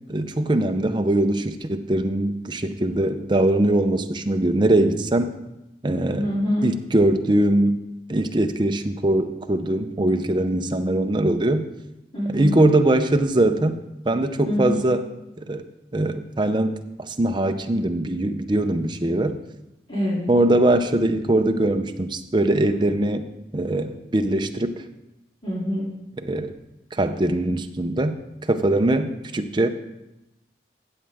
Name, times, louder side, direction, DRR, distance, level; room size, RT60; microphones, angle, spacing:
voice 1, 0.1-5.3 5.8-6.3 6.6-7.8 8.1-11.7 12.3-13.8 14.1-15.1 15.5-15.6 15.9-16.7 17.0-19.3 20.3-23.2 23.5-24.7 26.2-26.5 26.9-28.2 28.5-29.7, right 1 dB, 25° right, 7 dB, 0.6 m, -21 dB
voice 2, 6.1-6.7 12.1-12.5 14.4-14.8 19.9-20.3 25.4-25.9, equal, 30° left, -9 dB, 3.1 m, -25 dB
14.5 x 7.6 x 3.5 m, 0.92 s
head